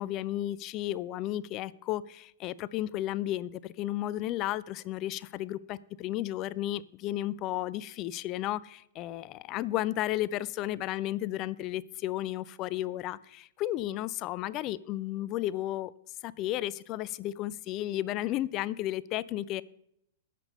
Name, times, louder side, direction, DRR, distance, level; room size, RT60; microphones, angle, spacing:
voice 1, 0.0-15.9 16.2-19.6, left 14 dB, 35° left, 20 dB, 0.4 m, -33 dB
8.9 x 6.8 x 6.5 m, 0.77 s
figure-of-eight pair, 100°, 0 cm